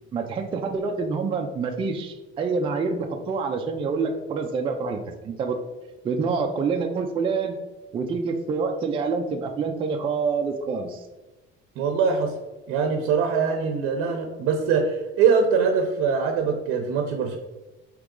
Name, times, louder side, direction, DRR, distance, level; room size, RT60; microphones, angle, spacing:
voice 1, 0.1-5.6 6.0-7.6 7.9-11.1, right 4 dB, 25° right, 3 dB, 0.4 m, -27 dB
voice 2, 11.8-12.3 12.7-17.4, right 5 dB, 90° right, 4 dB, 0.6 m, -23 dB
4.7 x 3.0 x 3.7 m, 1.1 s
cardioid pair, 150°, 21 cm